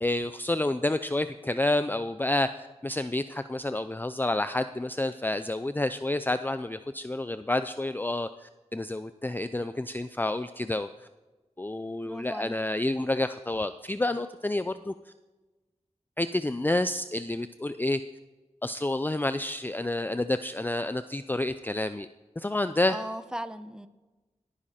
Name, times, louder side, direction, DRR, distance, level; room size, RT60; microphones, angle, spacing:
voice 1, 0.0-10.9 11.6-14.9 16.2-18.0 18.6-22.1 22.4-23.0, left 2 dB, 15° left, 11 dB, 0.4 m, -29 dB
voice 2, 12.0-12.6 22.9-23.9, equal, 5° right, 12 dB, 0.8 m, -37 dB
17.5 x 10.0 x 4.3 m, 1.2 s
wide cardioid pair, 65°, 12 cm